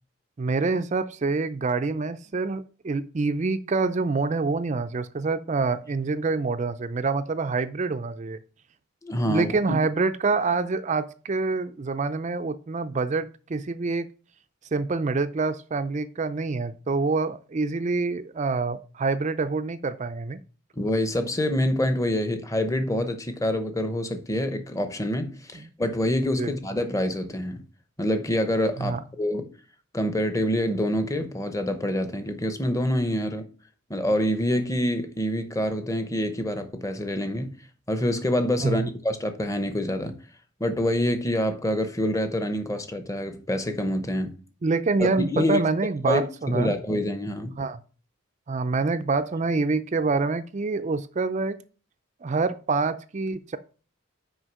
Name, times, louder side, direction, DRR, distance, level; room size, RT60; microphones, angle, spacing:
voice 1, 0.4-8.4 9.2-14.1 14.7-20.4 26.4-26.5 28.8-29.0 38.6-38.9 44.6-46.7 47.6-47.8 48.5-51.6 52.2-53.6, right 3 dB, 35° right, 0.4 m, -26 dB
voice 2, 9.0-9.5 20.8-27.6 28.0-29.5 29.9-33.4 33.9-37.5 37.9-40.2 40.6-44.3 45.3-45.6 46.1-47.5, left 1 dB, 15° left, 0.8 m, -26 dB
6.3 x 5.1 x 6.1 m
head